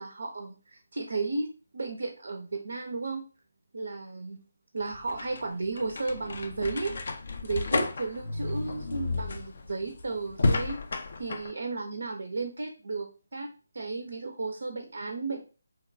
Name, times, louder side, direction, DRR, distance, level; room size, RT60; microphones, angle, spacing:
voice 1, 0.0-3.2 3.7-4.4 4.7-6.9 7.4-10.8 11.2-13.5 13.7-15.4, right 3 dB, 55° right, 5 dB, 0.3 m, -34 dB
sound 1, 4.8-11.5, left 3 dB, 50° left, 0.3 m, -32 dB
2.8 x 2.2 x 2.5 m, 0.35 s
figure-of-eight pair, 150°, 0 cm